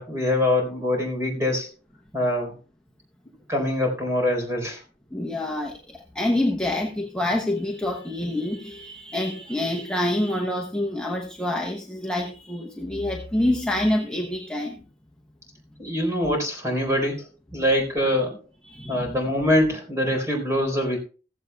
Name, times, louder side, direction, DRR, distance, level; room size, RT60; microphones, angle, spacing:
voice 1, 0.0-1.7 2.1-2.6 3.5-4.8 15.8-17.3 17.5-18.4 18.9-21.0, left 1 dB, 15° right, 2 dB, 4.0 m, -24 dB
voice 2, 5.1-14.8 18.6-19.2, left 1 dB, 5° left, 0 dB, 0.9 m, -27 dB
15.5 x 15.0 x 2.3 m, 0.35 s
head